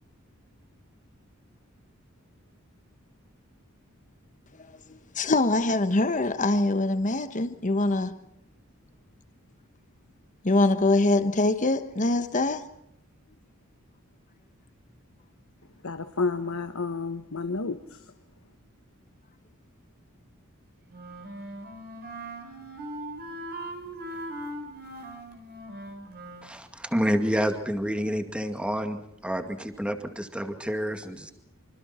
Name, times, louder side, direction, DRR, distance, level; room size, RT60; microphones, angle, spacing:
voice 1, 4.7-8.1 10.4-12.6, left 2 dB, 35° left, 1.2 m, -24 dB
voice 2, 15.8-18.0, left 3 dB, 75° left, 1.3 m, -30 dB
Wind instrument woodwind instrument, 20.9-26.5, right 1 dB, 50° right, 4.5 m, -39 dB
voice 3, 26.4-31.3, equal, 5° right, 2.2 m, -29 dB
26.0 x 26.0 x 4.4 m
head